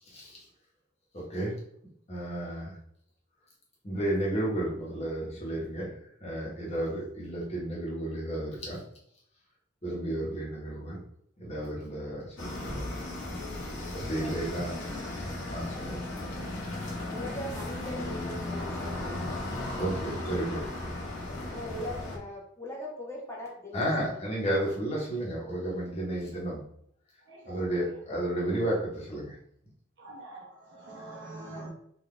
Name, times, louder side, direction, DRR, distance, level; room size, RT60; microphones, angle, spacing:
voice 1, 0.1-0.4 1.1-1.5 2.1-2.8 3.8-8.8 9.8-11.0 11.4-12.8 13.9-14.8 15.5-16.1 19.7-20.6 23.7-26.6 27.4-29.4, right 1 dB, 35° left, -4 dB, 1.3 m, -32 dB
sound 1, 12.4-22.2, left 2 dB, 85° left, 1.6 m, -36 dB
voice 2, 14.2-14.9 17.1-19.0 21.3-24.2 31.1-31.7, left 1 dB, 15° left, -3 dB, 0.7 m, -41 dB
voice 3, 27.2-28.0 30.0-31.7, right 2 dB, 65° right, -3 dB, 1.3 m, -45 dB
4.0 x 2.8 x 3.3 m, 0.69 s
head